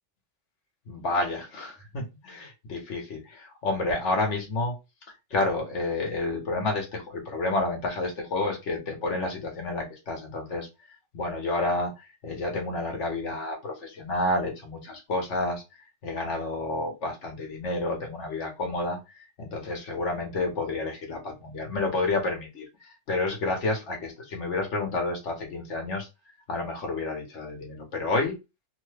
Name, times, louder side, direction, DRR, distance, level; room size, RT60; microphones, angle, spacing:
voice 1, 0.9-4.8 5.3-10.7 11.1-15.6 16.0-26.1 26.5-28.4, left 2 dB, 65° left, 1 dB, 1.3 m, -30 dB
3.1 x 2.2 x 3.2 m, 0.25 s
omnidirectional pair, 1.4 m